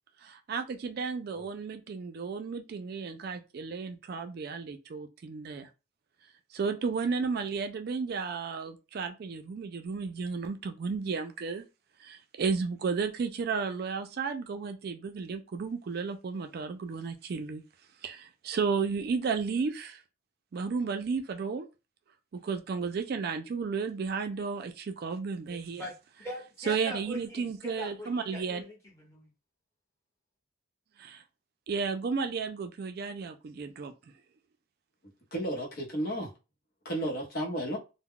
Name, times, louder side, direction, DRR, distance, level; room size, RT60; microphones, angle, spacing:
voice 1, 0.2-5.7 6.5-11.6 12.0-17.6 18.0-20.0 20.5-21.7 22.3-25.8 26.7-28.6 31.0-31.2 31.7-33.9, right 5 dB, 50° right, 0.3 m, -33 dB
voice 2, 25.5-25.9 26.2-29.3, equal, 15° left, 1.0 m, -42 dB
voice 3, 35.3-36.3 36.8-37.8, right 1 dB, 50° left, 0.8 m, -32 dB
2.3 x 2.0 x 3.6 m
head